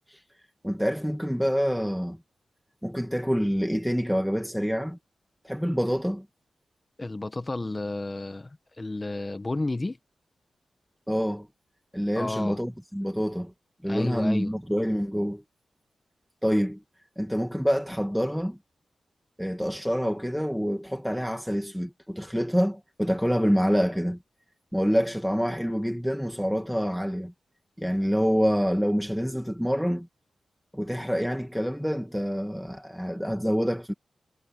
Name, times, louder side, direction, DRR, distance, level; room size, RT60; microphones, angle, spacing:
voice 1, 0.6-2.2 2.8-5.0 5.4-6.3 11.1-11.5 11.9-13.5 13.8-15.4 16.4-16.8 17.2-18.6 19.4-24.2 24.7-27.3 27.8-30.1 30.7-33.9, equal, ahead, 1.7 m, -26 dB
voice 2, 7.0-10.0 12.2-12.6 13.8-14.5, left 2 dB, 20° left, 1.1 m, -32 dB
wide cardioid pair, 155°, 0 cm